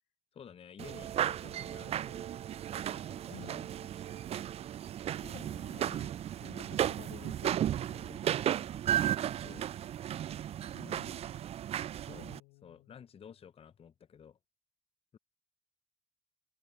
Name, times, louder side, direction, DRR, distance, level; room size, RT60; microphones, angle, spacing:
voice 1, 0.3-2.3 2.9-3.9 6.4-6.8 9.4-9.7 12.0-12.3 12.6-14.4 15.1-15.2, left 7 dB, 40° left, 0.9 m, -53 dB
sound 1, 0.8-12.4, right 11 dB, 45° right, 0.4 m, -35 dB
sound 2, 1.1-10.0, right 3 dB, 25° right, 6.9 m, -64 dB
voice 2, 3.3-3.9 5.1-6.1 6.6-8.6 10.7-11.3 12.2-13.0, left 26 dB, 70° left, 1.3 m, -54 dB
open air
figure-of-eight pair, 45°, 15 cm